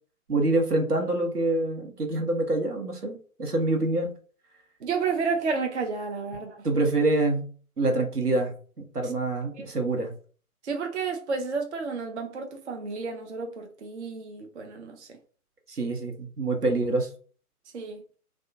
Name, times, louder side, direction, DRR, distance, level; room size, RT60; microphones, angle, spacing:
voice 1, 0.3-4.1 6.6-7.5 7.8-10.1 15.7-17.1, right 2 dB, 90° right, 1.0 m, -26 dB
voice 2, 4.8-6.7 9.0-9.1 9.6-9.7 10.6-15.1 17.7-18.0, right 5 dB, 50° right, 0.5 m, -31 dB
3.4 x 2.2 x 2.6 m
figure-of-eight pair, 135°, 45 cm